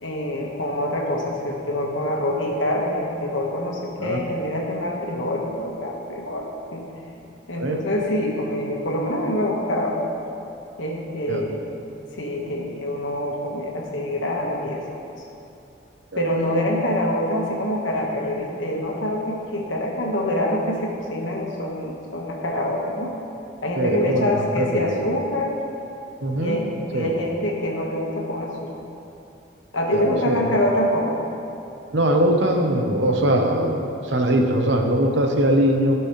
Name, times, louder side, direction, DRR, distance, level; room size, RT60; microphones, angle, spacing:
voice 1, 0.0-6.8 7.5-10.0 10.8-11.6 12.1-14.8 16.2-23.1 23.6-25.6 26.4-28.7 29.7-31.2, left 1 dB, 75° left, -1 dB, 1.4 m, -25 dB
voice 2, 23.8-25.0 26.2-26.6 26.9-27.1 29.9-30.6 31.9-36.0, right 1 dB, 70° right, 3 dB, 0.9 m, -21 dB
15.0 x 6.1 x 3.2 m, 2.8 s
head